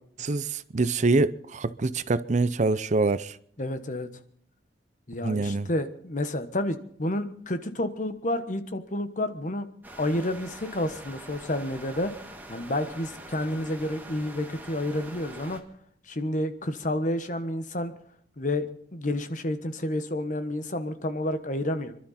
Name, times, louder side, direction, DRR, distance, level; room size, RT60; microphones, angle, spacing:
voice 1, 0.2-3.4 5.2-5.7, right 3 dB, 45° right, 0.5 m, -25 dB
voice 2, 3.6-4.1 5.1-9.7 10.0-12.1 12.5-15.6 16.1-17.9 18.4-22.0, left 1 dB, 45° left, 1.3 m, -30 dB
sound 1, 9.8-15.6, right 1 dB, 10° right, 1.7 m, -44 dB
26.5 x 12.0 x 4.2 m
head